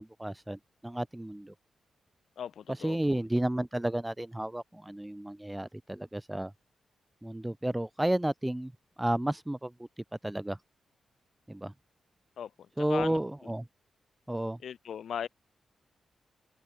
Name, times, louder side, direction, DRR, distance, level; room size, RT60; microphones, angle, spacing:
voice 1, 0.0-1.5 2.8-6.5 7.2-8.7 9.0-9.7 10.2-10.6 11.5-11.7 12.8-13.6 14.3-14.6, right 1 dB, 5° right, 0.9 m, -32 dB
voice 2, 2.4-3.2 12.4-13.5 14.6-15.3, left 8 dB, 65° left, 6.6 m, -39 dB
wide cardioid pair, 140°, 0 cm